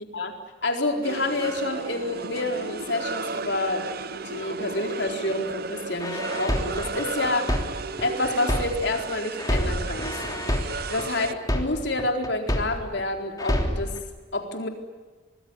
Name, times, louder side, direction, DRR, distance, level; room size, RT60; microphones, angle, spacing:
voice 1, 0.6-3.9 4.2-7.6 8.0-10.2 10.9-13.9 14.3-14.7, left 2 dB, 60° left, 4 dB, 4.2 m, -28 dB
sound 1, 1.0-11.3, right 4 dB, 55° right, 1.0 m, -34 dB
sound 2, 6.0-9.0 9.4-13.0 13.4-14.0, equal, 20° left, 3.2 m, -28 dB
25.0 x 21.0 x 9.8 m, 1.3 s
head